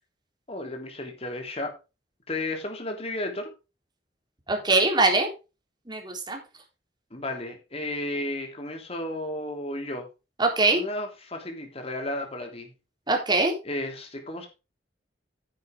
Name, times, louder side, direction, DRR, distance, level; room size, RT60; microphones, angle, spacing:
voice 1, 0.5-1.7 2.3-3.5 7.1-10.1 10.7-12.7 13.6-14.5, left 1 dB, 35° left, 4 dB, 3.2 m, -33 dB
voice 2, 4.5-5.3 5.9-6.4 10.4-10.8 13.1-13.5, right 3 dB, 25° right, 2 dB, 3.6 m, -22 dB
10.0 x 9.4 x 3.6 m, 0.29 s
head